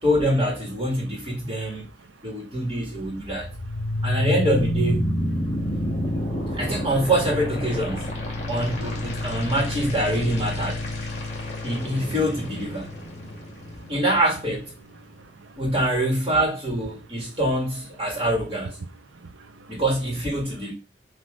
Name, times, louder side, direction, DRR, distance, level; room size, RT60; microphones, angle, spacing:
voice 1, 0.0-1.9 2.2-3.5 4.0-5.1 6.5-8.1 8.5-11.0 11.6-12.9 13.9-14.7 15.6-18.8 19.7-20.7, right 1 dB, 20° right, 1.6 m, -25 dB
sound 1, 2.6-14.6, left 1 dB, 35° left, 2.4 m, -29 dB
voice 2, 11.2-11.6 13.3-13.4 13.8-13.9 15.2-15.6 19.1-19.8, right 3 dB, 85° right, 0.7 m, -50 dB
7.6 x 2.7 x 5.0 m
head